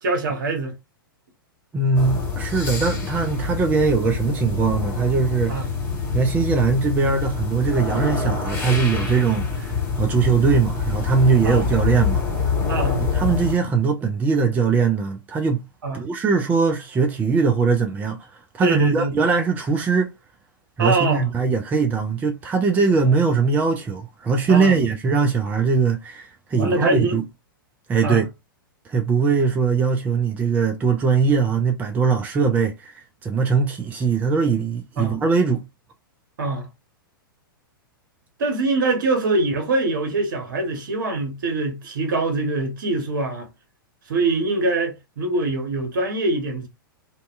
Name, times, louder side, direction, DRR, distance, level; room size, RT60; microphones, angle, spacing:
voice 1, 0.0-0.7 5.5-5.7 11.4-11.6 12.7-13.0 15.8-16.1 18.6-19.2 20.8-21.3 24.5-24.8 26.6-27.2 28.0-28.2 35.0-35.2 36.4-36.7 38.4-43.5 44.1-46.7, right 2 dB, 60° right, 1.1 m, -23 dB
voice 2, 1.7-5.6 6.1-12.2 13.1-15.6 15.9-18.2 18.5-20.1 20.8-27.2 27.9-28.3 28.9-35.6, right 5 dB, 15° right, 0.4 m, -21 dB
sound 1, 1.9-13.6, left 5 dB, 20° left, 1.1 m, -26 dB
2.6 x 2.2 x 2.4 m
figure-of-eight pair, 105°, 12 cm